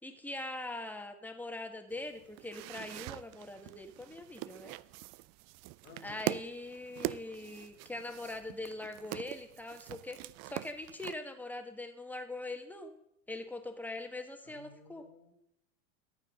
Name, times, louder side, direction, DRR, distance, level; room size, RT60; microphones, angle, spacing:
voice 1, 0.0-4.7 6.0-10.2 10.4-12.9 13.3-15.1, left 2 dB, 5° left, 5 dB, 1.7 m, -42 dB
sound 1, 1.9-11.1, right 19 dB, 45° right, 0.5 m, -43 dB
voice 2, 5.8-6.2 14.5-15.3, left 4 dB, 55° left, 6 dB, 2.4 m, -55 dB
14.5 x 9.4 x 3.8 m, 0.74 s
hypercardioid pair, 90°, 39 cm